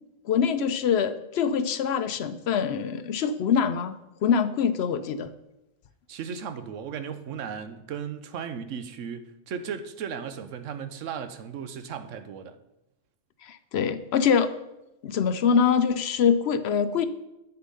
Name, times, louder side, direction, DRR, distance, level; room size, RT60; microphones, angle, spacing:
voice 1, 0.3-5.3 13.4-14.5 15.0-17.0, left 7 dB, 65° left, 0.8 m, -24 dB
voice 2, 6.1-12.6, right 7 dB, 85° right, 1.1 m, -36 dB
8.1 x 6.7 x 5.5 m
omnidirectional pair, 1.3 m